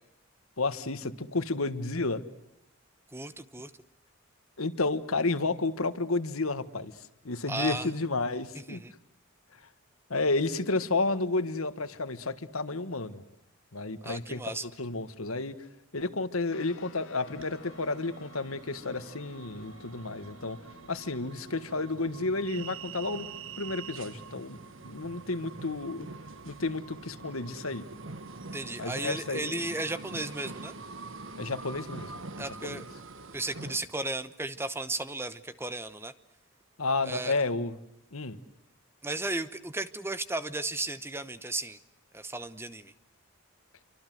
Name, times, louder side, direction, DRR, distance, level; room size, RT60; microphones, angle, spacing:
voice 1, 0.6-2.2 4.6-6.9 7.2-8.8 10.1-13.2 13.7-15.5 15.9-20.6 20.9-23.3 23.6-24.6 24.8-26.1 26.4-27.9 28.8-29.6 31.4-32.1 32.6-32.8 36.8-37.8 38.1-38.4, left 3 dB, 85° left, 12 dB, 1.6 m, -31 dB
voice 2, 3.1-3.7 7.5-7.9 8.5-8.9 14.0-14.7 28.5-30.8 32.4-32.9 33.3-36.1 37.0-37.4 39.0-41.8 42.1-42.9, right 2 dB, 10° right, 13 dB, 0.9 m, -35 dB
sound 1, 16.5-28.2, left 1 dB, 70° left, 3.0 m, -55 dB
sound 2, 17.3-33.8, right 4 dB, 65° right, 1.4 m, -45 dB
27.5 x 25.0 x 7.8 m, 0.85 s
head